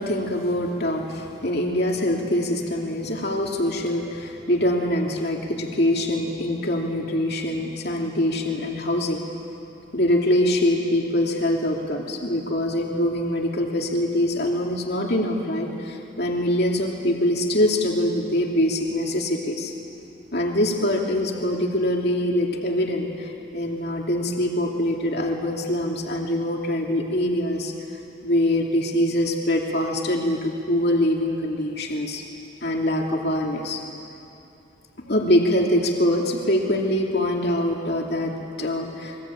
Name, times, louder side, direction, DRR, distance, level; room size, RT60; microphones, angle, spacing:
voice 1, 0.0-9.2 9.9-19.7 20.3-27.7 28.2-32.2 32.6-33.8 35.1-39.2, left 1 dB, 50° left, 0 dB, 2.8 m, -24 dB
27.5 x 22.5 x 8.7 m, 2.7 s
head